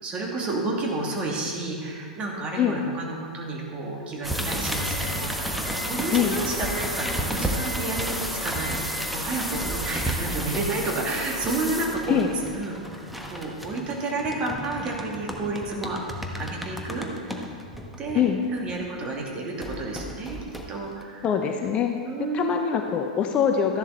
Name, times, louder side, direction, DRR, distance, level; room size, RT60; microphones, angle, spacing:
voice 1, 0.0-12.2 12.5-12.8 13.3-16.0 16.4-17.1 18.0-18.2 18.5-20.4 20.7-21.3 22.0-22.8, right 3 dB, 30° right, -1 dB, 2.6 m, -31 dB
sound 1, 4.2-19.1 19.6-21.0, equal, ahead, 1.2 m, -32 dB
voice 2, 21.2-23.8, left 8 dB, 25° left, 5 dB, 0.8 m, -24 dB
13.5 x 11.0 x 4.2 m, 2.1 s
figure-of-eight pair, 95°, 4 cm